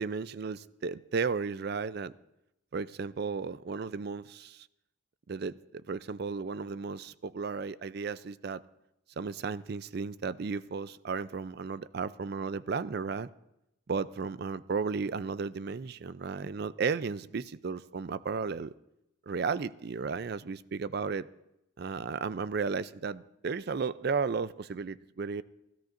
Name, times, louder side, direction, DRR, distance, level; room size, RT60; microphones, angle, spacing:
voice 1, 0.0-2.1 2.7-4.7 5.3-8.6 9.2-13.3 13.9-18.7 19.3-21.3 21.8-25.4, right 5 dB, 50° right, 16 dB, 0.4 m, -34 dB
29.5 x 13.5 x 2.6 m, 0.87 s
head